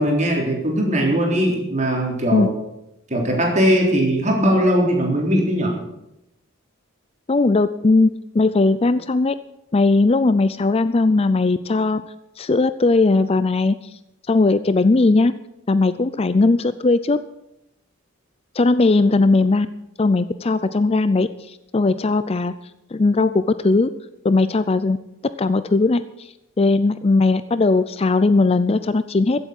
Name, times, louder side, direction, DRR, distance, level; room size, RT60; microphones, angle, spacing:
voice 1, 0.0-2.5 3.1-5.8, equal, 35° right, 0 dB, 3.7 m, -19 dB
voice 2, 7.3-9.3 9.7-12.0 12.4-13.8 14.3-15.3 15.7-17.2 18.6-19.7 20.0-22.5 22.9-23.9 24.2-25.0 25.4-29.5, left 3 dB, 30° left, 14 dB, 0.4 m, -18 dB
15.5 x 8.2 x 7.8 m, 0.86 s
head